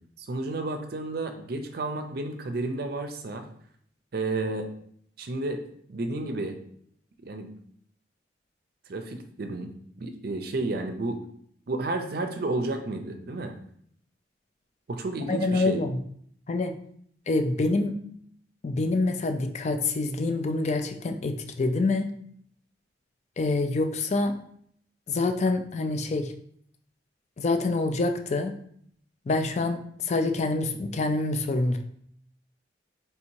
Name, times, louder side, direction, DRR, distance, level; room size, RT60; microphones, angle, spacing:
voice 1, 0.2-3.5 4.1-4.7 5.2-5.6 5.9-6.6 7.2-7.5 8.9-9.7 10.0-11.2 11.7-13.5 14.9-15.8, right 2 dB, 55° right, 6 dB, 0.5 m, -31 dB
voice 2, 15.3-16.0 16.5-16.7 17.3-17.9 18.6-22.1 23.4-24.3 25.1-26.3 27.4-28.5 29.3-31.8, left 2 dB, 40° left, 6 dB, 0.4 m, -26 dB
3.3 x 2.7 x 4.5 m, 0.65 s
head